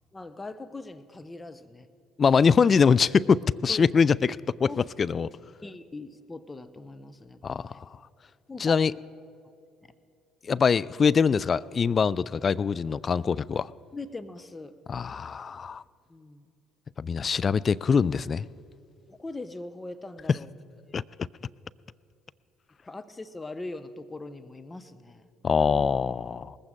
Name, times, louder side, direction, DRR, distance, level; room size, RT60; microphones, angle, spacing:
voice 1, 0.1-1.9 3.7-4.0 4.7-5.1 5.6-7.8 8.5-9.0 9.8-9.9 13.9-14.8 16.1-16.5 19.1-20.5 20.9-21.0 22.8-25.3, left 2 dB, 20° left, 0.9 m, -41 dB
voice 2, 2.2-4.7 5.0-5.3 7.4-7.9 8.6-8.9 10.5-13.7 14.9-15.8 17.0-18.4 20.3-20.4 20.9-21.0 25.4-26.6, left 6 dB, 40° left, 0.3 m, -23 dB
19.5 x 15.0 x 3.7 m
hypercardioid pair, 55°, 0 cm